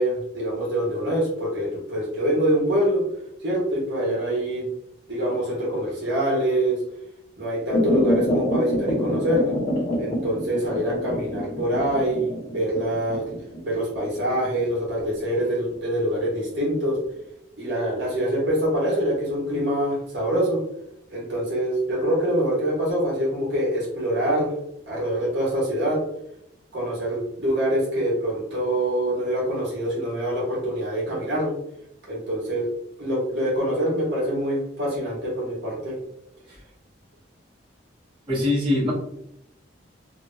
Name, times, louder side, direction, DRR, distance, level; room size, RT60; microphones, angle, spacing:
voice 1, 0.0-3.0 3.4-4.7 5.1-6.8 7.4-9.5 10.0-13.3 13.6-17.0 17.6-20.6 21.1-24.5 24.9-26.0 26.7-31.5 32.1-32.7 33.0-36.0, right 1 dB, 65° right, -5 dB, 1.2 m, -25 dB
sound 1, 7.7-16.6 16.9-17.0, left 1 dB, 45° left, 1.1 m, -27 dB
voice 2, 38.3-38.9, left 1 dB, 25° right, -10 dB, 1.0 m, -22 dB
2.9 x 2.2 x 2.6 m, 0.77 s
head